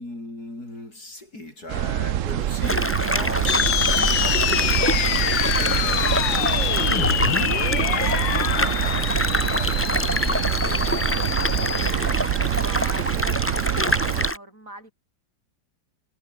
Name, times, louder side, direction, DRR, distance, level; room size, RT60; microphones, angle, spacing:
voice 1, 0.0-6.5 6.8-13.6, left 1 dB, 50° left, 8.4 m, -39 dB
sound 1, 1.7-14.3, right 12 dB, 65° right, 0.8 m, -26 dB
sound 2, 2.6-14.4, equal, 5° left, 3.8 m, -26 dB
sound 3, 3.5-11.9, left 13 dB, 80° left, 1.5 m, -26 dB
voice 2, 12.5-14.9, right 1 dB, 45° right, 7.9 m, -42 dB
omnidirectional pair, 2.0 m